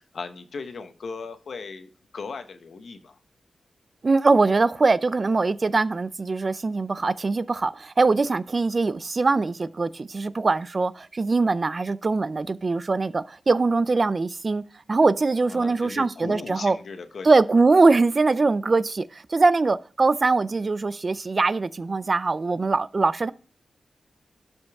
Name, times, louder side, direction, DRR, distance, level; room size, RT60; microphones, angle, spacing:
voice 1, 0.0-3.2 15.4-17.3, left 4 dB, 60° left, 0.9 m, -37 dB
voice 2, 4.0-14.6 14.9-16.8 17.2-23.3, right 3 dB, 35° right, 0.4 m, -22 dB
11.5 x 5.3 x 3.5 m
wide cardioid pair, 140°, 0 cm